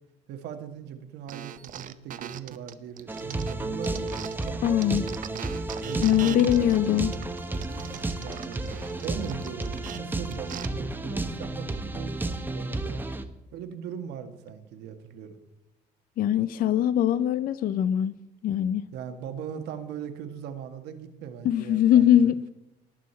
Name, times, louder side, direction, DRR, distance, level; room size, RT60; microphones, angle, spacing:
voice 1, 0.3-4.1 4.4-5.1 5.8-7.0 8.2-8.6 9.0-13.0 13.5-15.4 18.9-22.3, right 8 dB, 85° right, 1.3 m, -39 dB
sound 1, 1.3-4.5 4.8-10.7, right 10 dB, 50° right, 0.7 m, -41 dB
sound 2, 3.1-13.2, right 2 dB, 10° right, 0.9 m, -32 dB
voice 2, 4.6-5.0 6.0-7.1 16.2-18.2 18.4-18.8 21.4-22.4, left 11 dB, 55° left, 0.5 m, -22 dB
18.5 x 6.4 x 4.3 m
cardioid pair, 110°, 17 cm